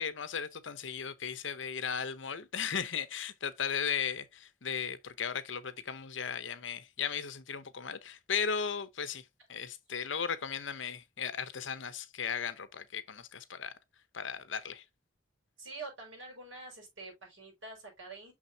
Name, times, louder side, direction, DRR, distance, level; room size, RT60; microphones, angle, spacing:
voice 1, 0.0-13.8 14.1-14.8, left 7 dB, 65° left, 0.9 m, -36 dB
voice 2, 15.6-18.3, right 3 dB, 75° right, 5.3 m, -46 dB
6.3 x 6.2 x 2.8 m
head